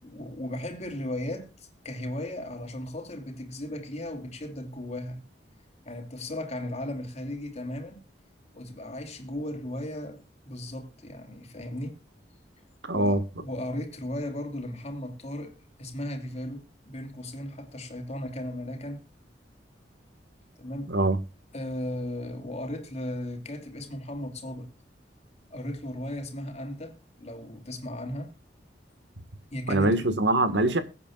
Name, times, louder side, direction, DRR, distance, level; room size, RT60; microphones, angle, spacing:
voice 1, 0.0-5.2 5.8-8.0 8.5-12.0 12.9-19.1 20.6-20.9 21.5-24.7 25.5-28.3 29.5-30.1, left 1 dB, 40° left, 2.8 m, -36 dB
voice 2, 12.9-13.2 20.9-21.2 29.7-30.8, right 2 dB, 85° right, 1.7 m, -23 dB
22.0 x 8.6 x 2.4 m
head